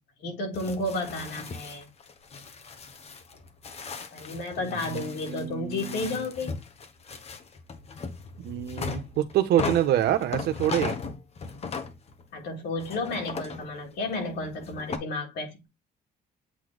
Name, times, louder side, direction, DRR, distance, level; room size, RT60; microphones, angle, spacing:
voice 1, 0.2-1.9 4.1-6.5 12.3-15.7, left 2 dB, 75° left, 3.7 m, -32 dB
sound 1, 0.5-12.4 12.8-15.0, left 5 dB, 40° left, 1.2 m, -37 dB
voice 2, 4.6-6.2 8.4-11.0, right 11 dB, 75° right, 1.3 m, -27 dB
8.3 x 3.4 x 3.9 m
cardioid pair, 110°, 17 cm